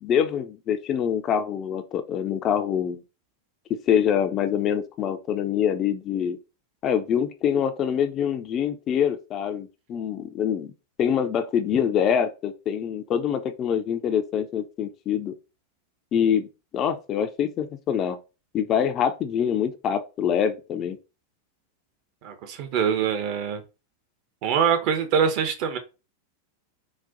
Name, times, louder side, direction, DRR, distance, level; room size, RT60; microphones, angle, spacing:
voice 1, 0.0-3.0 3.9-6.4 6.8-10.7 11.0-15.3 16.1-16.5 16.7-18.2 18.5-21.0, left 8 dB, 30° left, 0.4 m, -25 dB
voice 2, 22.2-23.6 24.4-25.8, right 7 dB, 45° right, 0.6 m, -24 dB
4.0 x 2.1 x 2.5 m
figure-of-eight pair, 90°, 0 cm